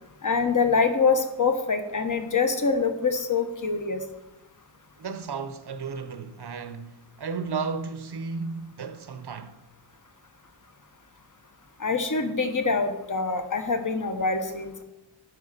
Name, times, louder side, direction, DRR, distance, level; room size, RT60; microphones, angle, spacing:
voice 1, 0.2-4.0 11.8-14.8, left 4 dB, 40° left, 1.1 m, -25 dB
voice 2, 5.0-9.6, right 5 dB, 55° right, 0.8 m, -34 dB
11.0 x 5.0 x 6.7 m
wide cardioid pair, 85°, 48 cm